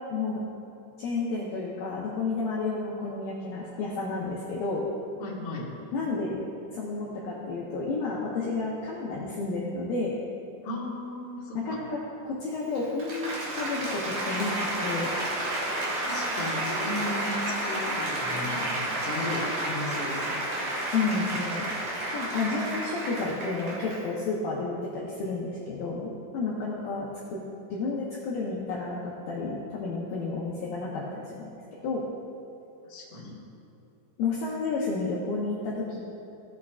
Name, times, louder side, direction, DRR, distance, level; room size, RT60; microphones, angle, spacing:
voice 1, 0.1-0.4 1.0-4.8 5.9-6.4 6.7-10.2 11.5-15.1 20.9-21.7 22.1-27.4 27.7-31.6 31.8-32.0 34.2-36.0, left 3 dB, 90° left, -4 dB, 2.0 m, -31 dB
voice 2, 5.2-5.7 10.6-11.8 16.0-20.6 32.8-33.4, left 2 dB, 70° left, -5 dB, 1.3 m, -36 dB
Applause, 12.6-24.2, right 1 dB, 60° right, 2.2 m, -31 dB
16.0 x 8.3 x 2.4 m, 2.7 s
omnidirectional pair, 5.4 m